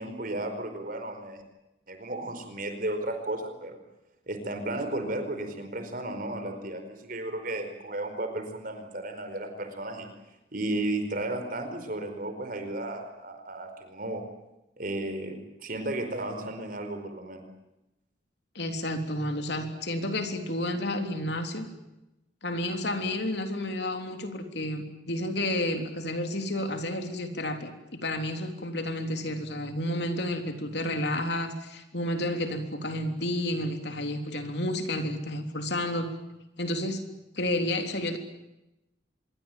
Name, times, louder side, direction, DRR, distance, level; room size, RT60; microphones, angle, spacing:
voice 1, 0.0-1.4 1.9-3.8 4.3-10.1 10.5-14.2 14.8-17.4, right 1 dB, 45° right, 7 dB, 4.6 m, -34 dB
voice 2, 18.6-21.7 22.4-27.7 28.0-36.1 36.6-37.0 37.3-38.2, left 1 dB, 60° left, 6 dB, 3.5 m, -31 dB
25.5 x 22.5 x 9.2 m, 0.94 s
head